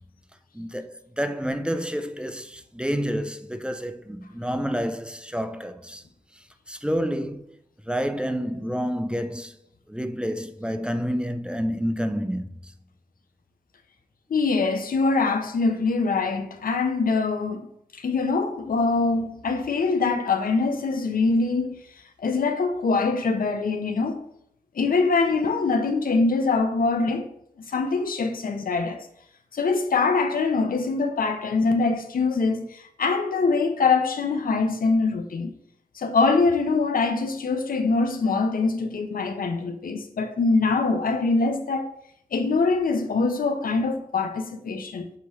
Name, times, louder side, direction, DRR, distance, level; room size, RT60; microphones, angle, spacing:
voice 1, 0.5-6.0 6.3-7.6 7.9-9.6 9.9-12.7, equal, 5° right, 0.6 m, -29 dB
voice 2, 14.3-17.7 17.9-21.8 22.2-24.2 24.7-27.3 27.7-29.1 29.5-35.5 35.9-41.9 42.3-45.1, left 4 dB, 85° left, 0.8 m, -23 dB
8.3 x 3.1 x 4.8 m
cardioid pair, 45°, 14 cm